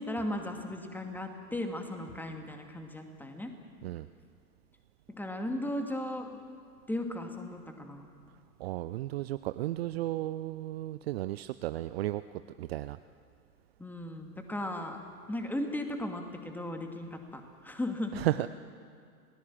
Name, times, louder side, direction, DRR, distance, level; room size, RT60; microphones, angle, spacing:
voice 1, 0.0-3.5 5.1-6.3 6.9-8.1 13.8-15.0 15.3-18.2, left 1 dB, 5° left, 4 dB, 2.4 m, -36 dB
voice 2, 8.6-12.2 12.6-13.0 18.1-18.5, right 15 dB, 45° right, 13 dB, 0.6 m, -33 dB
28.5 x 19.0 x 7.4 m, 2.3 s
figure-of-eight pair, 100°, 45 cm